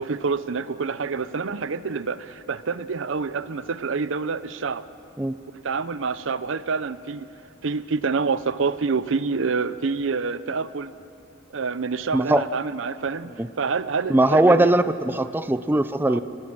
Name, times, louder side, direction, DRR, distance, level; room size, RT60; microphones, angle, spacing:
voice 1, 0.0-4.8 5.6-7.3 7.6-10.9 11.5-13.3 13.6-14.7 16.1-16.2, right 4 dB, 65° right, 15 dB, 0.6 m, -27 dB
voice 2, 12.1-12.4 13.4-13.5 14.1-16.2, right 1 dB, 10° right, 11 dB, 0.4 m, -20 dB
30.0 x 19.0 x 6.1 m, 2.7 s
head